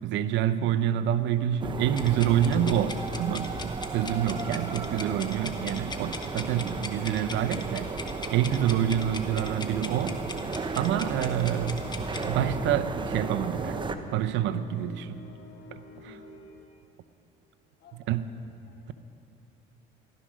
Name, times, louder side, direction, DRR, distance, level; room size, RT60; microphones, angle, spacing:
voice 1, 0.0-7.9 8.3-10.2 10.7-11.8 12.2-13.8 14.1-15.2 15.7-16.1 18.1-18.2, right 10 dB, 75° right, 11 dB, 0.7 m, -27 dB
sound 1, 1.6-13.9, right 4 dB, 25° right, 0.9 m, -35 dB
sound 2, 1.9-12.3, left 3 dB, 20° left, 1.4 m, -40 dB
voice 2, 4.5-4.9 15.9-16.5 17.8-18.2 18.7-18.9, left 4 dB, 60° left, -1 dB, 3.0 m, -57 dB
sound 3, 8.6-16.7, left 4 dB, 80° left, 1.8 m, -48 dB
15.5 x 12.5 x 6.3 m, 2.9 s
cardioid pair, 100°, 19 cm